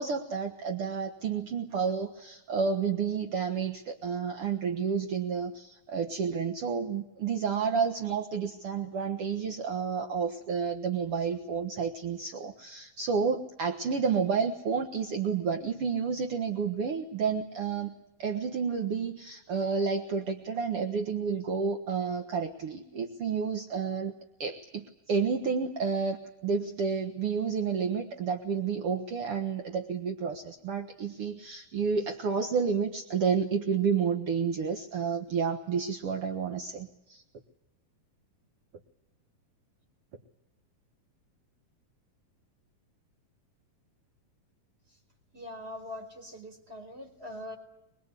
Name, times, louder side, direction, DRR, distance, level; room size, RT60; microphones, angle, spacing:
voice 1, 0.0-17.9 18.2-24.1 24.4-37.2, right 6 dB, 55° right, 5 dB, 1.7 m, -30 dB
voice 2, 45.3-47.6, left 1 dB, 15° right, 3 dB, 4.7 m, -42 dB
23.5 x 23.0 x 8.3 m, 0.88 s
omnidirectional pair, 4.3 m